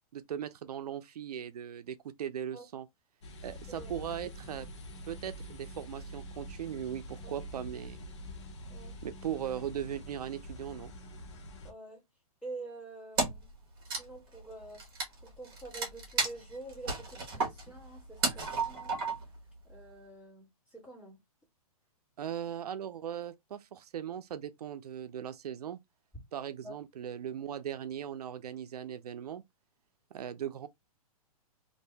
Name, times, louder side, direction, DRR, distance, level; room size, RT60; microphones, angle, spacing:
voice 1, 0.1-2.9 3.4-4.7 5.1-8.0 9.0-10.9 22.2-25.8 26.3-29.4 30.1-30.7, right 9 dB, 85° right, 0.5 m, -39 dB
sound 1, 3.2-11.7, equal, 45° left, 0.8 m, -46 dB
voice 2, 11.6-12.0 12.4-13.5 14.0-14.9 15.2-19.0 19.6-21.2 26.6-26.7 30.2-30.3, right 2 dB, 5° left, 1.7 m, -47 dB
Wood, 13.2-13.5 13.8-19.4, right 3 dB, 40° right, 1.3 m, -33 dB
2.7 x 2.6 x 3.3 m
hypercardioid pair, 175°, 19 cm